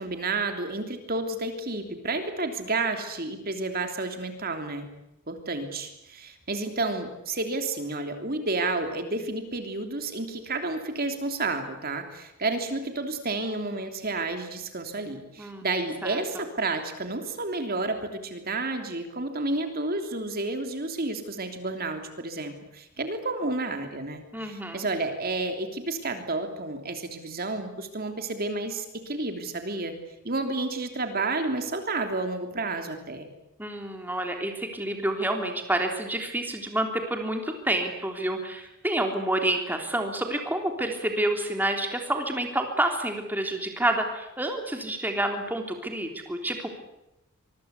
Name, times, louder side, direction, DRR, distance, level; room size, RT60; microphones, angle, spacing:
voice 1, 0.0-4.9 5.3-30.0 30.2-33.3, right 2 dB, 40° right, 6 dB, 3.2 m, -31 dB
voice 2, 24.3-24.9 33.6-46.7, right 1 dB, 10° right, 3 dB, 3.4 m, -28 dB
25.5 x 23.5 x 8.3 m, 0.88 s
head